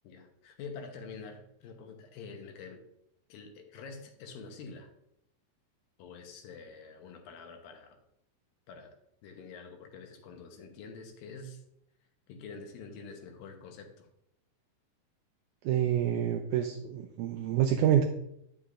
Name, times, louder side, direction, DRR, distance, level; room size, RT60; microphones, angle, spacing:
voice 1, 0.0-2.8 3.3-4.9 6.0-8.0 8.7-8.9 9.2-11.6 12.3-14.1, left 4 dB, 80° left, 4 dB, 2.7 m, -46 dB
voice 2, 15.6-18.0, right 10 dB, 80° right, 4 dB, 1.8 m, -27 dB
9.4 x 6.8 x 2.5 m, 0.75 s
omnidirectional pair, 4.1 m